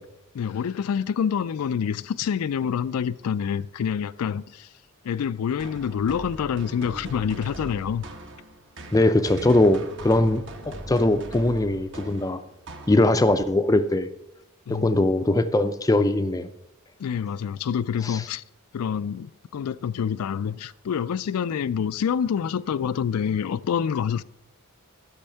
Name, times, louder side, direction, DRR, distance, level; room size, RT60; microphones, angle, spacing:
voice 1, 0.3-4.7 5.0-8.0 14.7-15.1 17.0-18.4 18.7-24.2, left 7 dB, 90° left, 0.4 m, -27 dB
sound 1, 5.6-13.4, right 1 dB, 55° right, 1.1 m, -40 dB
voice 2, 8.9-12.4 12.9-14.1 14.7-16.5 18.0-18.2, left 1 dB, 15° left, 0.4 m, -21 dB
12.0 x 6.3 x 5.6 m
head